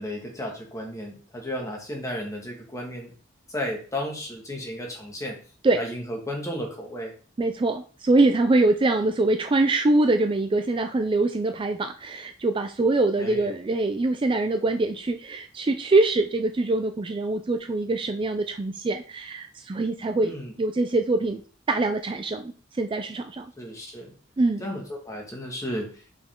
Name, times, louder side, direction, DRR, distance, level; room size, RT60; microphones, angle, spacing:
voice 1, 0.0-3.1 3.5-5.4 5.7-7.1 13.2-13.5 20.2-20.5 23.6-24.1 24.6-25.9, equal, 15° left, 0 dB, 1.7 m, -33 dB
voice 2, 7.4-21.4 21.7-23.5 24.4-24.7, right 2 dB, 25° right, 7 dB, 0.4 m, -24 dB
5.1 x 5.1 x 3.7 m, 0.40 s
head